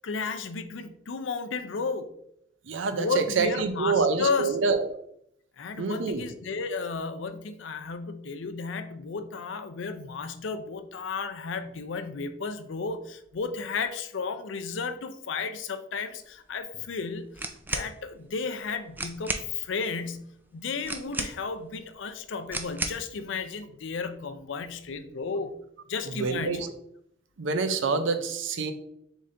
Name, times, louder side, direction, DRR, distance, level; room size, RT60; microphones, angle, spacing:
voice 1, 0.0-2.1 2.9-4.5 5.6-25.5 25.9-26.7, left 4 dB, 65° left, 9 dB, 0.5 m, -33 dB
voice 2, 2.7-4.8 5.8-6.2 26.2-26.7 27.4-28.7, right 4 dB, 70° right, 8 dB, 0.5 m, -26 dB
sound 1, 17.3-17.9 18.6-18.7 18.9-19.5 20.9-21.6 22.5-23.1, right 2 dB, 10° right, 0.3 m, -33 dB
4.1 x 3.5 x 3.6 m, 0.75 s
head